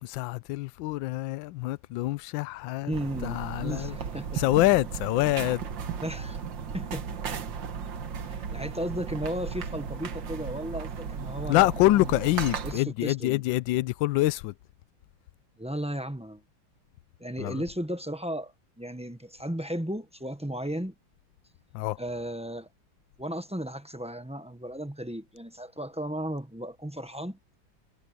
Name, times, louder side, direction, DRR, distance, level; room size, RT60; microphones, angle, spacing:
voice 1, 0.0-2.9 3.2-4.0 4.3-5.6 11.5-14.5 17.4-17.6 21.7-22.0, left 18 dB, 80° left, 1.3 m, -26 dB
voice 2, 2.8-4.4 6.0-6.4 6.7-7.4 8.2-12.2 12.6-13.4 15.6-16.4 17.2-20.9 22.0-22.7 23.2-27.4, equal, 5° right, 0.6 m, -35 dB
sound 1, 2.9-12.8, right 6 dB, 70° right, 2.1 m, -35 dB
omnidirectional pair, 2.1 m